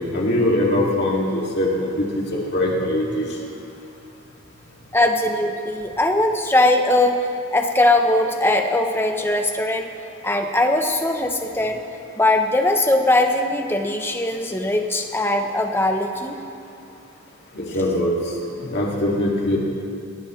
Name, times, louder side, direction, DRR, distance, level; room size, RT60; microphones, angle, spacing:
voice 1, 0.0-2.2 2.5-3.3 17.5-18.1 18.6-19.6, left 1 dB, 50° left, -3 dB, 2.5 m, -22 dB
voice 2, 4.9-7.2 7.5-9.9 10.2-11.8 12.2-16.4, left 1 dB, 10° left, 4 dB, 0.8 m, -20 dB
20.5 x 18.0 x 3.3 m, 2.7 s
head